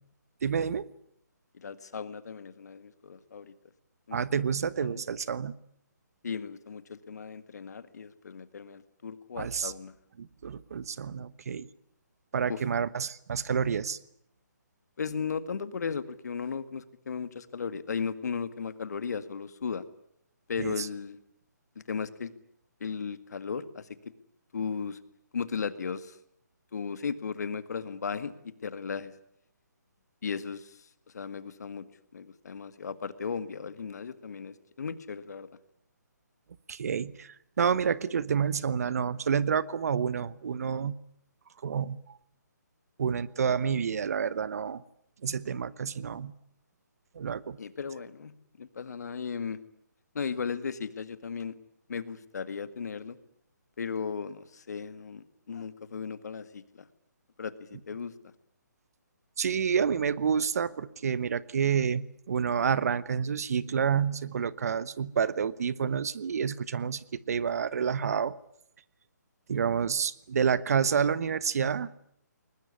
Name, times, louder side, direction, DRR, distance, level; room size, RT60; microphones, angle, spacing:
voice 1, 0.4-0.9 4.1-5.5 9.4-9.7 10.2-11.7 12.3-14.0 20.6-20.9 36.7-40.9 41.6-42.2 43.0-44.8 45.2-46.3 47.1-47.6 59.4-68.4 69.5-71.9, right 7 dB, 55° right, 18 dB, 1.2 m, -29 dB
voice 2, 1.5-3.5 4.1-4.4 4.8-5.0 6.2-9.9 12.5-12.6 15.0-19.8 20.5-21.2 21.9-22.3 22.8-23.9 24.5-25.0 25.3-26.2 26.7-29.1 30.2-30.9 31.1-31.8 32.1-35.5 47.6-48.3 48.6-49.6 50.1-51.6 51.9-53.2 53.8-56.9 57.4-58.3, left 6 dB, 60° left, 13 dB, 1.9 m, -36 dB
21.5 x 20.5 x 9.9 m, 0.71 s
figure-of-eight pair, 150°, 10 cm